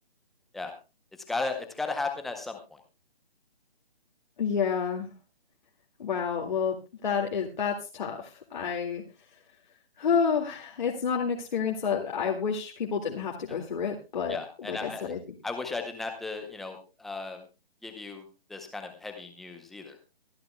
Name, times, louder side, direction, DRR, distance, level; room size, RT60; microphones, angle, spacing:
voice 1, 1.3-2.8 14.3-15.1 15.4-17.4 17.8-18.2 18.5-20.0, left 3 dB, ahead, 5 dB, 0.7 m, -35 dB
voice 2, 4.4-5.1 6.0-6.8 7.0-9.0 9.3-9.4 10.0-15.2, left 6 dB, 50° left, 0 dB, 2.2 m, -29 dB
24.0 x 10.5 x 2.2 m, 0.29 s
figure-of-eight pair, 150°, 31 cm